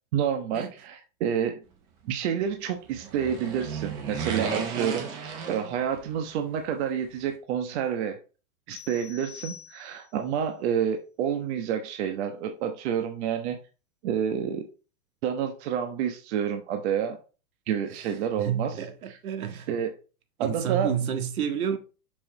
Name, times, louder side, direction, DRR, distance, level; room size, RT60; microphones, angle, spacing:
voice 1, 0.1-1.6 2.0-8.2 8.7-13.6 14.0-14.7 15.2-17.2 17.7-18.7 19.7-19.9 20.4-20.9, right 8 dB, 50° right, 1.2 m, -29 dB
sound 1, 2.9-6.3 6.5-6.6, right 6 dB, 10° right, 0.3 m, -34 dB
sound 2, 8.7-10.2, left 9 dB, 30° left, 1.3 m, -45 dB
voice 2, 17.9-19.8 20.4-21.8, right 8 dB, 75° right, 1.8 m, -30 dB
6.8 x 5.5 x 4.0 m
hypercardioid pair, 140°, 43 cm